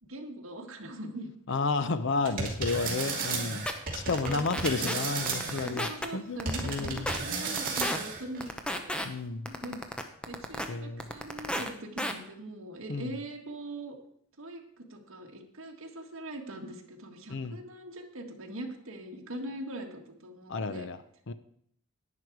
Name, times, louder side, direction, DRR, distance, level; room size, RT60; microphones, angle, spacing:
voice 1, 0.0-1.3 3.3-3.5 4.2-5.0 5.6-9.0 9.5-9.8 10.3-14.0 14.4-20.9, right 1 dB, 70° right, 2 dB, 1.8 m, -42 dB
voice 2, 1.5-3.6 3.9-7.1 9.0-9.5 10.7-11.1 12.9-13.1 17.3-17.6 20.5-21.0 21.3-21.4, left 4 dB, 60° left, 12 dB, 0.6 m, -31 dB
sound 1, 2.2-5.7 6.5-8.5, right 4 dB, 40° right, 2.6 m, -33 dB
sound 2, 3.2-3.3 3.7-3.8 4.1-4.9 5.3-6.1 6.4-7.2 7.6-8.0 8.4-9.1 9.5-10.7 11.0-11.7 12.0-12.1, equal, 5° left, 0.8 m, -32 dB
11.0 x 9.6 x 4.7 m, 0.67 s
head